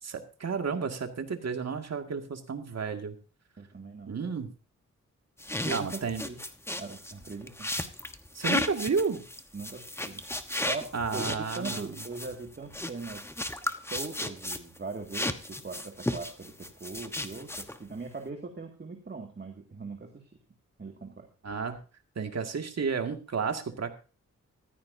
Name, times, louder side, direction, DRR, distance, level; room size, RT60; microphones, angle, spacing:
voice 1, 0.0-3.2 4.1-4.5 5.7-6.2 8.3-9.2 10.9-12.0 21.4-21.8 22.2-23.9, right 5 dB, 60° right, 5 dB, 2.1 m, -32 dB
voice 2, 3.6-4.1 5.6-6.4 6.8-7.7 9.5-10.2 10.6-13.2 13.8-20.3 20.8-21.3, right 4 dB, 35° right, 3 dB, 2.1 m, -40 dB
sound 1, 5.4-14.8 15.1-17.9, left 1 dB, 10° left, 1.2 m, -34 dB
14.5 x 14.5 x 2.7 m, 0.35 s
wide cardioid pair, 90°, 30 cm